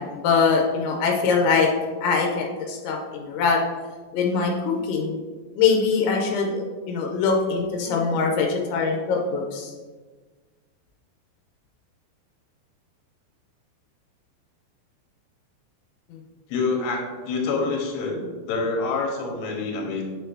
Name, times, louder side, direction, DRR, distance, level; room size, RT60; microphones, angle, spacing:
voice 1, 0.0-1.7 2.0-3.6 4.1-5.2 5.6-9.7 16.1-16.2, left 5 dB, 90° left, 1 dB, 3.1 m, -23 dB
voice 2, 16.5-18.2 18.5-20.0, left 4 dB, 75° left, 0 dB, 3.0 m, -26 dB
7.0 x 6.5 x 2.7 m, 1.4 s
omnidirectional pair, 5.2 m